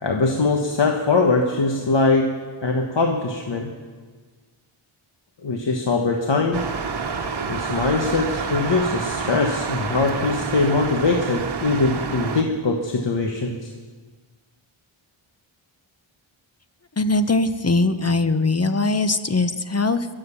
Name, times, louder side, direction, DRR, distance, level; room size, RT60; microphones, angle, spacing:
voice 1, 0.0-2.4 2.6-3.7 5.4-6.7 7.4-13.7, left 3 dB, 60° left, 2 dB, 1.5 m, -22 dB
sound 1, 6.5-12.4, right 5 dB, 50° right, 1.3 m, -28 dB
voice 2, 17.0-20.1, left 3 dB, 30° left, 10 dB, 1.1 m, -21 dB
22.0 x 8.0 x 7.1 m, 1.5 s
cardioid pair, 50°, 50 cm